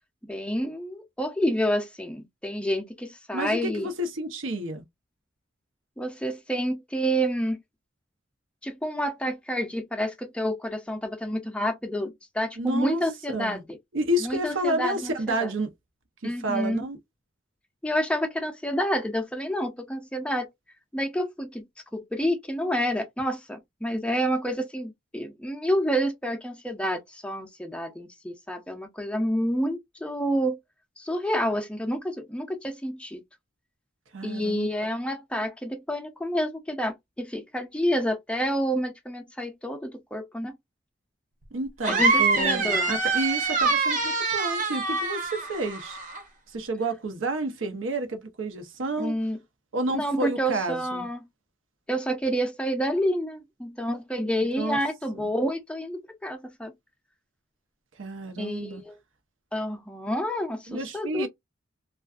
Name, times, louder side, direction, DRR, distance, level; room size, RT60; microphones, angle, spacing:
voice 1, 0.3-3.9 6.0-7.6 8.6-13.6 14.2-15.5 16.2-16.9 17.8-20.5 20.9-21.7 21.9-30.6 31.0-33.2 34.2-40.5 41.9-43.0 49.0-49.4 49.9-51.2 51.9-56.7 58.4-59.0 59.5-61.3, equal, 5° left, 0.4 m, -29 dB
voice 2, 3.3-4.8 12.6-13.0 13.3-13.6 13.9-15.7 16.2-17.0 34.1-34.9 41.5-46.0 46.5-49.2 49.7-51.1 54.4-54.8 55.1-55.3 58.0-58.8 60.7-61.3, right 1 dB, 85° right, 0.8 m, -30 dB
sound 1, 41.8-46.2, right 3 dB, 40° right, 0.7 m, -25 dB
2.4 x 2.4 x 2.3 m
head